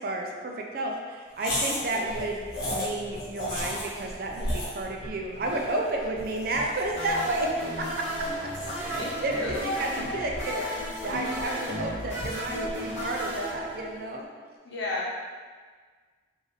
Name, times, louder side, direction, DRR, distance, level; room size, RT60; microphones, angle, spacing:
voice 1, 0.0-7.5 7.8-8.1 8.4-8.5 8.8-14.5, right 2 dB, 50° right, 0 dB, 0.4 m, -32 dB
sound 1, 1.4-13.8, left 1 dB, 55° left, 1.2 m, -37 dB
sound 2, 6.9-14.2, equal, 35° left, 1.1 m, -34 dB
voice 2, 8.9-9.7 14.6-15.1, left 2 dB, 70° left, -5 dB, 0.9 m, -32 dB
3.8 x 2.6 x 3.2 m, 1.5 s
head